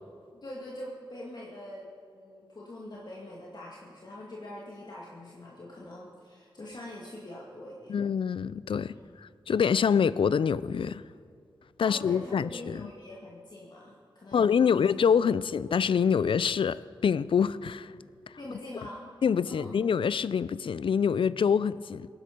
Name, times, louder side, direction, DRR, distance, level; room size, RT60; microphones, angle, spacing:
voice 1, 0.3-1.9 2.1-8.0 8.9-9.1 11.8-14.9 18.4-19.2 19.4-19.8, left 1 dB, 55° left, 2.2 m, -44 dB
voice 2, 7.9-8.9 9.5-11.0 11.8-12.8 14.3-17.9 19.2-22.1, left 7 dB, 80° left, 0.4 m, -25 dB
18.5 x 11.0 x 5.3 m
wide cardioid pair, 65°, 9 cm